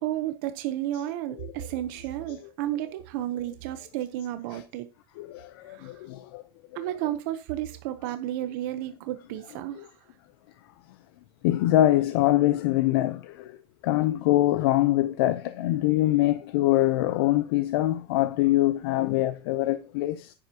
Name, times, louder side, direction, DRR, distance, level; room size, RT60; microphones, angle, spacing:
voice 1, 0.0-4.9 5.7-5.9 6.7-9.9, right 13 dB, 55° right, 0.9 m, -32 dB
voice 2, 5.2-6.4 9.8-9.9 11.4-13.5 13.8-20.3, left 15 dB, 75° left, 0.7 m, -24 dB
10.0 x 9.8 x 2.9 m
cardioid pair, 180°, 13 cm